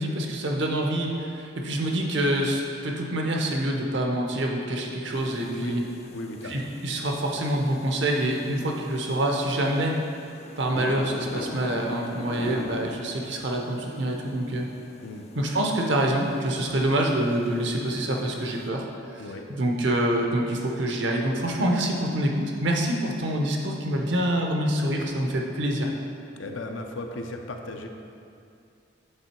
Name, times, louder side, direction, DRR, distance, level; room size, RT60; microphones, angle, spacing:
voice 1, 0.0-5.8 6.4-10.0 10.6-14.7 15.3-18.8 19.5-25.9, right 1 dB, 65° right, 1 dB, 0.8 m, -26 dB
sound 1, 5.1-18.7, left 2 dB, 30° left, 0.3 m, -42 dB
voice 2, 6.1-6.6 15.0-15.3 19.2-19.5 26.4-27.9, left 2 dB, 75° left, 4 dB, 0.6 m, -36 dB
8.8 x 3.8 x 4.4 m, 2.5 s
head